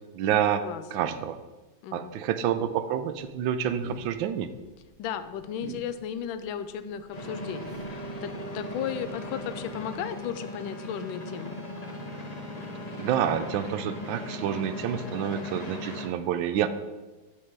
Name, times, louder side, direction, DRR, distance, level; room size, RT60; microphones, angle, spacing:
voice 1, 0.1-1.4 1.9-4.5 13.0-16.7, right 9 dB, 80° right, 11 dB, 1.3 m, -28 dB
voice 2, 1.8-2.1 5.0-11.6, left 8 dB, 85° left, 11 dB, 1.4 m, -35 dB
sound 1, 3.1-10.4, right 4 dB, 50° right, 0.8 m, -51 dB
sound 2, 7.1-16.1, left 1 dB, 30° left, 0.8 m, -38 dB
8.4 x 6.6 x 4.6 m, 1.2 s
omnidirectional pair, 2.2 m